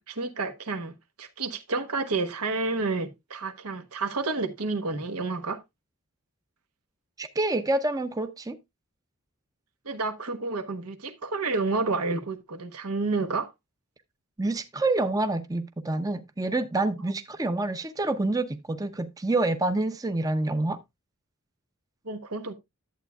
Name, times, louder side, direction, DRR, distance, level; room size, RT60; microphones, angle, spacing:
voice 1, 0.1-0.9 1.2-5.6 9.8-13.5 22.0-22.5, right 3 dB, 90° right, 1.2 m, -30 dB
voice 2, 7.2-8.6 14.4-20.8, right 2 dB, 15° right, 0.5 m, -27 dB
11.5 x 8.2 x 2.3 m
head